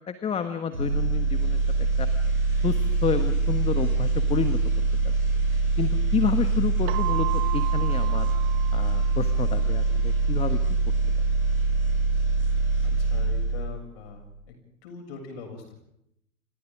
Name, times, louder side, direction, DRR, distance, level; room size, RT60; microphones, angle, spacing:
voice 1, 0.1-1.6 2.0-2.1 2.6-4.6 5.8-7.3 7.5-8.3 8.7-10.6, left 7 dB, 15° left, 9 dB, 1.4 m, -29 dB
sound 1, 0.7-13.9 14.2-14.4, right 3 dB, 85° right, 7.0 m, -24 dB
Keyboard (musical), 6.9-9.6, right 18 dB, 30° right, 1.1 m, -35 dB
voice 2, 12.8-14.2 14.5-14.6 14.8-15.8, left 4 dB, 45° left, 4 dB, 7.1 m, -41 dB
29.0 x 28.5 x 3.7 m, 0.78 s
figure-of-eight pair, 105°, 41 cm